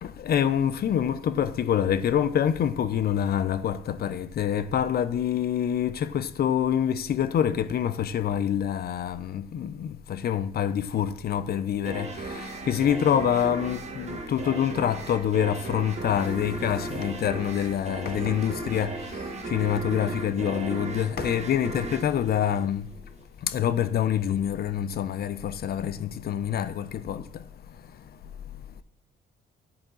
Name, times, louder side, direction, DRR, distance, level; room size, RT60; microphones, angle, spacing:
voice 1, 0.0-22.9 23.4-27.4, left 9 dB, 50° left, 0.5 m, -26 dB
sound 1, 11.9-23.1, right 2 dB, 35° right, 1.3 m, -36 dB
9.6 x 3.9 x 3.8 m
cardioid pair, 90°, 20 cm